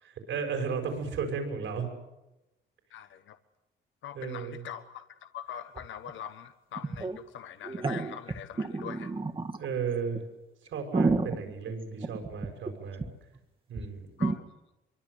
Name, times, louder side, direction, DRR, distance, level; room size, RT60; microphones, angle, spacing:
voice 1, 0.3-1.9 4.1-4.6 9.6-10.2 10.7-13.0 13.7-14.1, right 5 dB, 75° right, 4 dB, 6.3 m, -34 dB
voice 2, 2.9-3.4 4.0-5.0 5.3-9.1 14.2-14.4, left 9 dB, 75° left, 9 dB, 1.3 m, -42 dB
sound 1, 5.8-5.9 6.1-6.2 6.8-7.2 7.6-9.6 10.1-10.2 10.7-12.7 13.0-13.1 13.4-13.5 13.7-13.8 14.2-14.4, right 3 dB, 25° right, 2.0 m, -30 dB
24.5 x 24.0 x 8.3 m, 0.98 s
cardioid pair, 90°, 20 cm